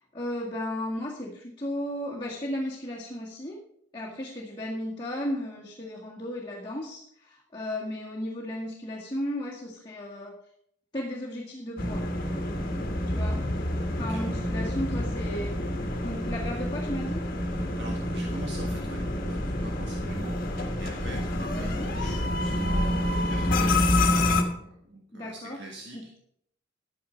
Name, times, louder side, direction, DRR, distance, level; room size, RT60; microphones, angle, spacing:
voice 1, 0.1-3.6 3.9-10.4 10.9-12.1 13.1-13.5 14.0-15.6 16.0-17.2 21.6-21.9 25.1-25.6 25.9-26.1, left 1 dB, 20° left, -5 dB, 1.8 m, -34 dB
sound 1, 11.8-24.4, left 1 dB, 45° left, 1.6 m, -28 dB
voice 2, 17.8-23.8 24.2-26.1, right 1 dB, 55° right, 1 dB, 1.5 m, -43 dB
11.5 x 9.4 x 5.1 m, 0.72 s
head